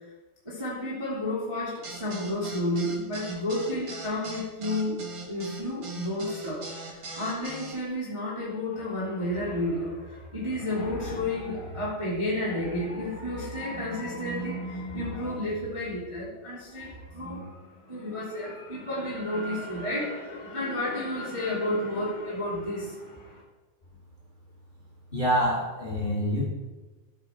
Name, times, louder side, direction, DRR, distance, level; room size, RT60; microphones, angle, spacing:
voice 1, 0.4-23.4, left 1 dB, 10° right, -7 dB, 2.4 m, -31 dB
sound 1, 1.8-7.8, right 3 dB, 45° right, 1.7 m, -40 dB
voice 2, 25.1-26.4, equal, 15° left, -3 dB, 2.7 m, -26 dB
12.0 x 8.9 x 4.7 m, 1.2 s
omnidirectional pair, 4.2 m